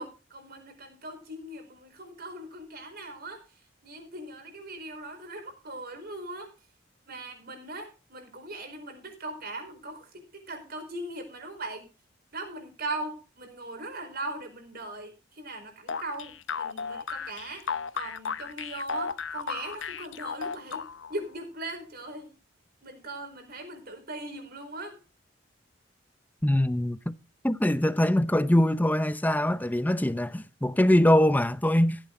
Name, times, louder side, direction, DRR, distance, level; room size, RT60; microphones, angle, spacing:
voice 1, 0.0-3.4 3.8-6.5 7.1-11.9 12.3-17.6 17.9-22.3 22.8-25.0, right 2 dB, 55° right, 4.4 m, -39 dB
sound 1, 15.9-21.2, left 6 dB, 85° left, 0.8 m, -34 dB
voice 2, 26.4-27.2 27.4-32.0, left 1 dB, 10° left, 0.6 m, -23 dB
15.5 x 9.2 x 3.8 m
head